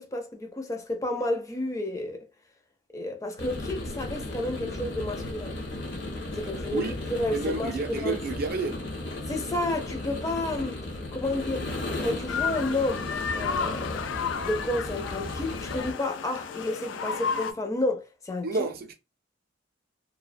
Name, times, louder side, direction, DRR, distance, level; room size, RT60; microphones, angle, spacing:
voice 1, 0.0-2.3 2.9-5.6 6.4-8.2 9.3-10.8 11.1-11.7 12.0-14.1 14.4-18.5, left 2 dB, 15° left, 0.4 m, -31 dB
sound 1, 3.4-15.9, left 2 dB, 70° left, 0.8 m, -35 dB
voice 2, 7.3-8.8 18.4-18.9, right 3 dB, 55° right, 0.4 m, -30 dB
sound 2, 12.3-17.5, left 6 dB, 85° left, 0.4 m, -32 dB
2.3 x 2.1 x 2.5 m
head